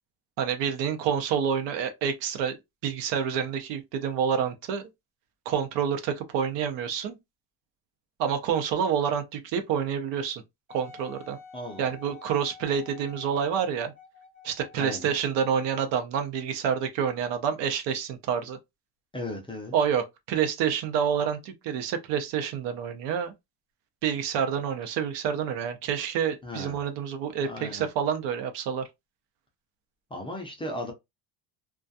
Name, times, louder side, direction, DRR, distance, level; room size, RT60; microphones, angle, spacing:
voice 1, 0.4-2.6 2.8-4.8 5.5-7.2 8.2-10.4 10.7-11.4 11.8-13.9 14.4-18.6 19.7-23.3 24.0-28.9, right 7 dB, 75° right, 0.7 m, -28 dB
Wind instrument woodwind instrument, 10.7-15.0 15.7-15.8, left 7 dB, 25° right, 0.9 m, -49 dB
voice 2, 11.5-11.9 14.8-15.1 19.1-19.7 26.4-26.8 27.4-27.9 30.1-30.9, left 1 dB, 15° left, 0.3 m, -36 dB
2.3 x 2.3 x 2.6 m
cardioid pair, 150°, 44 cm